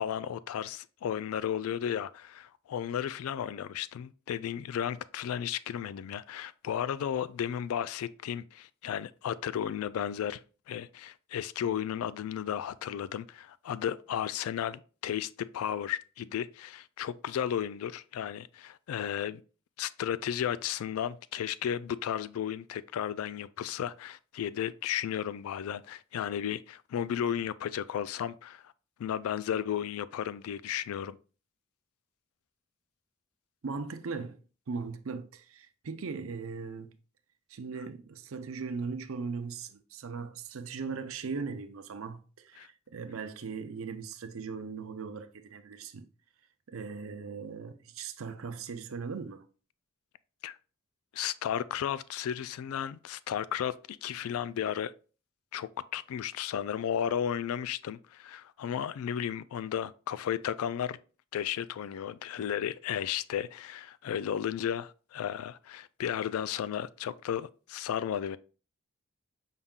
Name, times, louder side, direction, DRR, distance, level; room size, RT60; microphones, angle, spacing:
voice 1, 0.0-10.4 10.7-19.4 19.8-28.6 29.0-31.2 42.6-42.7 50.4-50.6 51.1-54.9 55.5-61.0 61.3-68.4, left 9 dB, 90° left, 0.3 m, -34 dB
voice 2, 33.6-34.4 34.7-36.9 37.5-46.0 46.7-49.4, right 5 dB, 75° right, 0.5 m, -39 dB
5.5 x 3.6 x 2.4 m
head